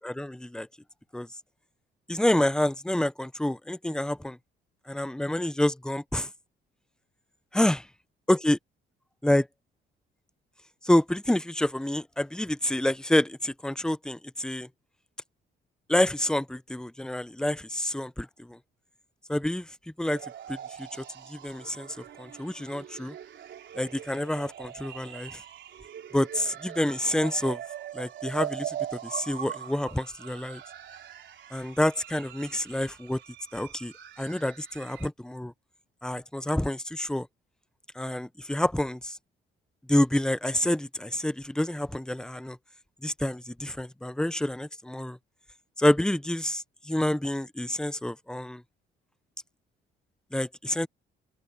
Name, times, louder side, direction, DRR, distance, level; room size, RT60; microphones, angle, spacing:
voice 1, 0.0-0.7 1.1-1.3 2.1-4.4 4.9-6.3 7.5-7.9 8.3-8.6 9.2-9.5 10.8-14.7 15.9-18.6 19.3-19.7 20.0-20.2 20.5-23.2 23.7-25.4 26.1-27.6 27.9-30.6 31.5-33.2 33.5-35.5 36.0-37.3 37.9-39.2 39.9-42.6 43.0-45.2 45.8-48.6 50.3-50.9, left 1 dB, 5° left, 0.7 m, -28 dB
sound 1, 20.0-35.1, right 11 dB, 70° right, 4.0 m, -41 dB
open air
cardioid pair, 90°, 20 cm